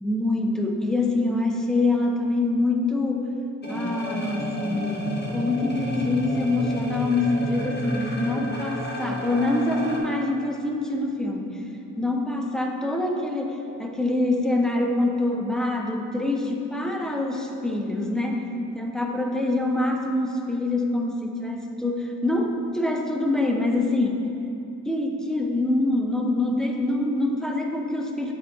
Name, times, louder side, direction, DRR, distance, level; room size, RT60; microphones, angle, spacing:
voice 1, 0.0-3.3 3.7-11.6 12.0-18.4 18.7-24.2 24.9-28.3, left 2 dB, ahead, 1 dB, 0.7 m, -25 dB
sound 1, 3.6-10.0, left 1 dB, 35° left, 1.2 m, -31 dB
8.1 x 4.6 x 3.6 m, 2.8 s
cardioid pair, 90°, 30 cm